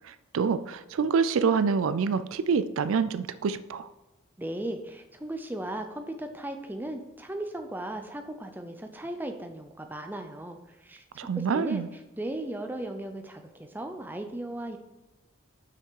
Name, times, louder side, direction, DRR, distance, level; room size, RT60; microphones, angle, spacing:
voice 1, 0.0-3.9 11.2-11.9, right 5 dB, 75° right, 13 dB, 0.4 m, -26 dB
voice 2, 4.4-11.0 11.3-11.8 12.2-14.8, right 1 dB, 10° right, 5 dB, 0.5 m, -36 dB
5.9 x 5.9 x 4.6 m, 1.1 s
head